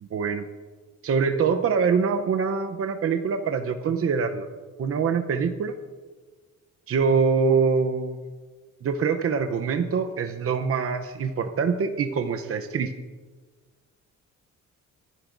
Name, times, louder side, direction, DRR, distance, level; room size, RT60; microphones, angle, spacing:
voice 1, 0.0-0.4 1.0-4.5 4.8-5.7 6.9-8.2 8.8-12.9, right 5 dB, 50° right, 6 dB, 0.8 m, -24 dB
24.5 x 11.0 x 2.6 m, 1.4 s
cardioid pair, 90°, 30 cm